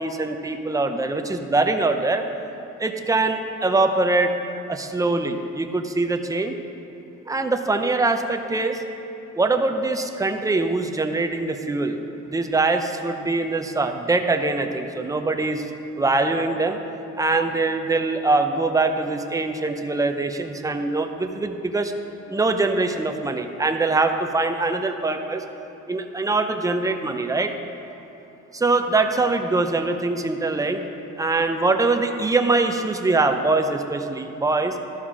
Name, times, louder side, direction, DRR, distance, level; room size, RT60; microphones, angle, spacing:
voice 1, 0.0-2.2 2.8-4.3 4.7-6.5 7.3-8.8 9.4-12.0 12.2-15.7 16.0-16.8 17.2-21.9 22.3-25.4 25.9-27.5 28.5-30.8 31.2-34.8, right 3 dB, 10° right, 6 dB, 0.6 m, -23 dB
12.0 x 5.7 x 4.9 m, 2.8 s
cardioid pair, 90°, 30 cm